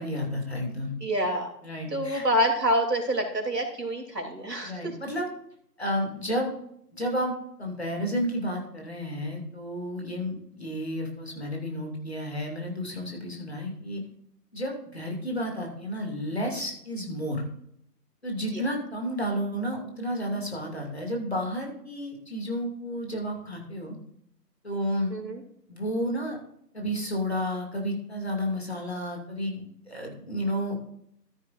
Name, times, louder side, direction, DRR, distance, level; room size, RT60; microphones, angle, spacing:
voice 1, 0.0-0.9 1.6-2.3 4.6-5.3 5.8-6.5 6.9-7.3 7.6-14.0 14.5-17.5 18.2-24.0 24.6-25.1 25.7-26.4 26.7-30.8, equal, 40° left, 1 dB, 2.4 m, -31 dB
voice 2, 1.0-1.5 1.9-4.7 18.5-18.6 25.1-25.4, equal, 70° right, 2 dB, 3.2 m, -27 dB
14.5 x 9.7 x 2.5 m, 0.71 s
figure-of-eight pair, 180°, 50 cm